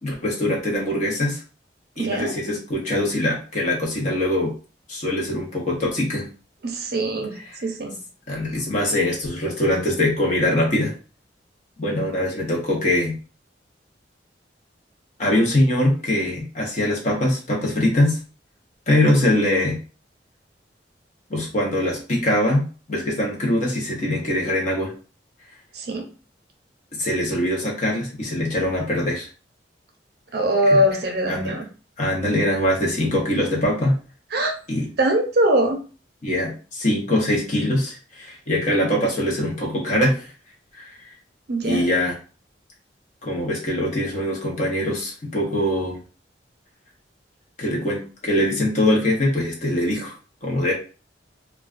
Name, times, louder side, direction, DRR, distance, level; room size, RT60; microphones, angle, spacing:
voice 1, 0.0-1.4 2.0-4.5 4.9-6.3 8.3-10.9 11.8-13.2 15.2-18.2 18.9-19.8 21.3-24.9 27.0-29.3 30.7-30.8 31.3-31.6 32.0-33.9 34.7-34.9 36.2-40.3 40.8-40.9 41.6-42.2 43.2-46.0 47.6-50.1 50.4-50.7, left 1 dB, 40° left, -2 dB, 0.8 m, -22 dB
voice 2, 2.0-2.3 6.6-8.0 25.7-26.1 30.3-31.7 34.3-34.5 35.0-35.8 41.5-41.9, right 1 dB, 60° right, 4 dB, 0.5 m, -22 dB
2.3 x 2.2 x 2.4 m, 0.36 s
head